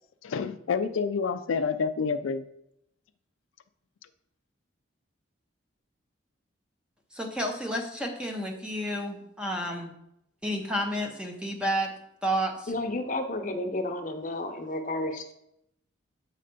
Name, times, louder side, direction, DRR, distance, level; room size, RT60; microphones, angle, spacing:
voice 1, 0.2-2.5, left 5 dB, 90° left, 10 dB, 0.4 m, -28 dB
voice 2, 7.1-10.0 10.4-11.9 12.2-12.7, equal, 5° right, 2 dB, 0.8 m, -31 dB
voice 3, 12.7-15.3, left 2 dB, 40° left, 5 dB, 0.7 m, -31 dB
7.6 x 3.3 x 5.2 m, 0.77 s
head